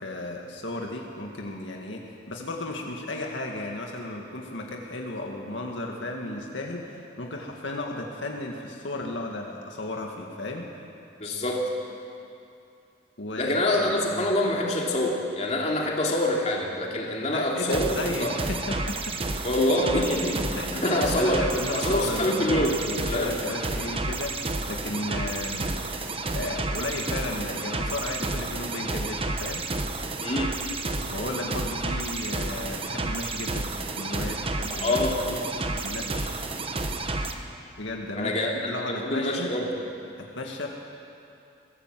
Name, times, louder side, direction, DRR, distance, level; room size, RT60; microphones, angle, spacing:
voice 1, 0.0-10.7 13.2-14.3 17.3-19.0 20.6-20.8 21.2-25.7 26.3-29.6 31.1-36.4 37.8-39.5 40.3-40.7, left 2 dB, 75° left, 0 dB, 1.9 m, -34 dB
voice 2, 11.2-11.6 13.4-18.3 19.4-21.4 21.7-22.8 23.0-23.4 30.2-30.5 34.6-35.2 38.2-38.5 38.9-39.8, left 1 dB, 35° left, -2 dB, 2.9 m, -26 dB
sound 1, 17.7-37.3, right 2 dB, 30° right, 1.1 m, -31 dB
22.5 x 17.0 x 7.6 m, 2.6 s
head